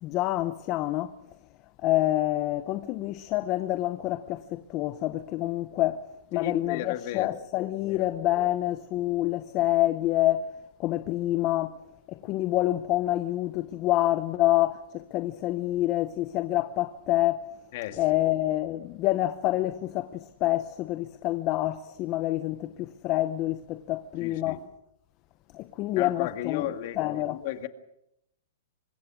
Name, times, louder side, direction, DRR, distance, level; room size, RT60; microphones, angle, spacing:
voice 1, 0.0-1.1 1.8-6.0 6.3-10.5 10.8-11.7 12.1-17.4 18.0-24.6 25.5-26.7 27.0-27.4, left 15 dB, 30° left, 0.8 m, -27 dB
voice 2, 6.3-7.3 7.8-8.1 17.7-18.2 24.2-24.6 26.0-27.7, left 12 dB, 45° left, 2.0 m, -35 dB
24.5 x 21.0 x 6.3 m
hypercardioid pair, 155°, 0 cm